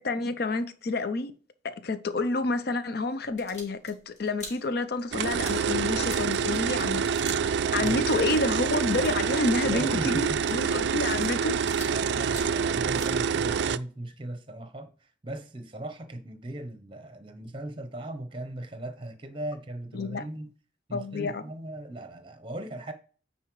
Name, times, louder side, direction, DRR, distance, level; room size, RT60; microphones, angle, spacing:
voice 1, 0.0-1.3 1.6-7.0 7.3-11.6 19.9-20.2 20.9-21.4, left 3 dB, 55° left, 0.6 m, -29 dB
sound 1, 3.2-7.5 7.8-12.0 12.2-13.7, left 2 dB, 40° left, 2.1 m, -47 dB
sound 2, 5.1-13.8, right 6 dB, 60° right, 0.3 m, -27 dB
voice 2, 9.6-10.4 11.9-20.5 20.9-22.9, right 1 dB, 25° right, 0.8 m, -38 dB
9.4 x 4.2 x 3.1 m
head